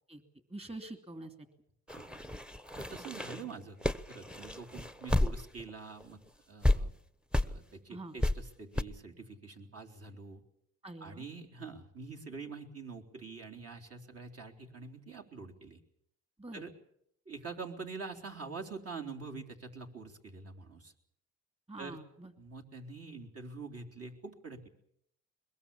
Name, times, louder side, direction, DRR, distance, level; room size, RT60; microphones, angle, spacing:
voice 1, 0.5-1.3 7.9-8.2 10.8-11.2 16.4-16.6 21.7-22.3, right 2 dB, 20° right, 7 dB, 2.7 m, -45 dB
sound 1, 1.9-5.7 6.0-6.1 6.6-6.8 7.3-7.5 8.2-8.3 8.8-8.9, left 1 dB, 5° right, 0.9 m, -31 dB
voice 2, 2.8-3.8 4.1-6.2 6.5-6.9 7.4-10.4 11.0-15.8 16.5-16.7 17.3-20.9 21.8-22.0 22.4-24.7, right 4 dB, 50° right, 2 dB, 3.8 m, -45 dB
22.5 x 21.5 x 7.2 m, 0.72 s
cardioid pair, 90°, 30 cm